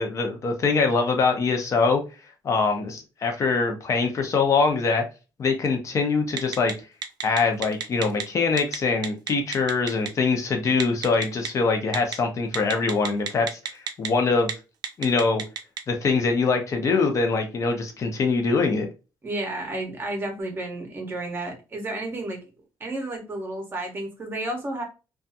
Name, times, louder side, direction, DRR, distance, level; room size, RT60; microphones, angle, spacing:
voice 1, 0.0-2.0 2.4-5.0 5.4-6.7 7.2-14.5 15.0-15.4 15.9-18.9, left 4 dB, 40° left, 4 dB, 0.7 m, -23 dB
Telephone, 6.4-6.7 7.0-8.2 8.6-8.8 9.0-10.1 10.8-11.5 11.9-12.1 12.5-14.1 14.4-14.5 14.8-15.8, right 8 dB, 60° right, 0.4 m, -29 dB
voice 2, 19.2-22.4 22.8-24.8, right 1 dB, 25° right, 2 dB, 0.8 m, -31 dB
2.5 x 2.3 x 2.6 m, 0.31 s
cardioid pair, 145°, 8 cm